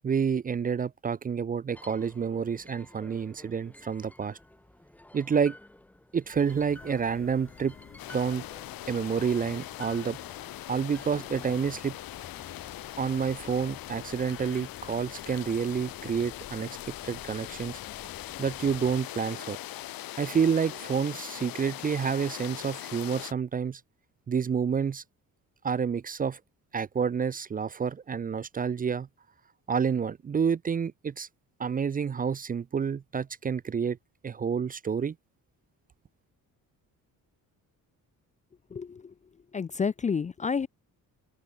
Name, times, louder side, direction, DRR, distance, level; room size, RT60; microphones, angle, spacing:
voice 1, 0.0-4.4 5.1-5.5 6.1-7.7 8.1-8.4 8.9-10.2 10.7-11.9 13.0-16.8 17.0-17.8 18.4-19.6 20.2-23.8 24.3-25.0 25.6-26.4 26.7-29.1 29.7-31.3 31.6-34.0 34.2-35.1, right 6 dB, 25° right, 0.6 m, -29 dB
sound 1, 1.7-11.7, left 1 dB, 5° left, 1.4 m, -53 dB
sound 2, 6.3-19.0, left 8 dB, 35° left, 2.7 m, -50 dB
sound 3, 8.0-23.3, left 15 dB, 75° left, 1.6 m, -41 dB
voice 2, 38.7-39.1 39.5-40.7, left 5 dB, 20° left, 0.5 m, -30 dB
open air
cardioid pair, 175°, 35 cm